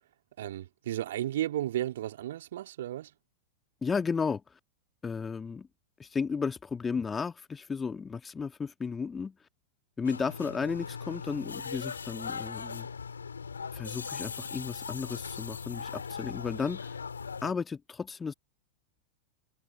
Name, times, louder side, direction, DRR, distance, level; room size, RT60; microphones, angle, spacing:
voice 1, 0.4-3.1, right 13 dB, 60° right, 2.8 m, -33 dB
voice 2, 3.8-4.6 5.0-5.7 6.0-9.3 10.0-12.9 13.7-17.0 17.4-18.3, left 5 dB, 15° left, 1.8 m, -34 dB
sound 1, 10.0-17.5, left 5 dB, 75° left, 2.9 m, -39 dB
figure-of-eight pair, 90°, 0 cm